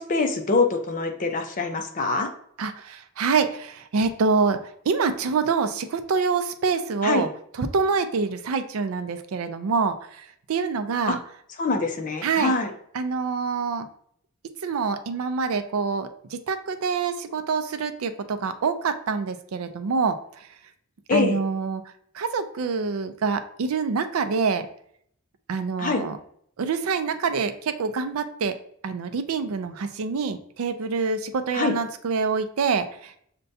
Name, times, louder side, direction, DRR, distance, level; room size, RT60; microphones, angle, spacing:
voice 1, 0.0-2.3 7.0-7.3 11.1-11.2 11.6-12.7 21.1-21.4 25.8-26.0 31.5-31.8, left 3 dB, 40° left, 4 dB, 0.6 m, -24 dB
voice 2, 2.6-4.6 4.9-7.3 7.6-10.0 10.5-11.2 12.2-12.5 12.9-13.9 14.6-20.2 21.1-21.8 22.2-24.7 25.5-26.2 26.6-28.6 28.8-33.1, right 5 dB, 90° right, 9 dB, 0.4 m, -26 dB
6.5 x 2.2 x 2.6 m, 0.66 s
head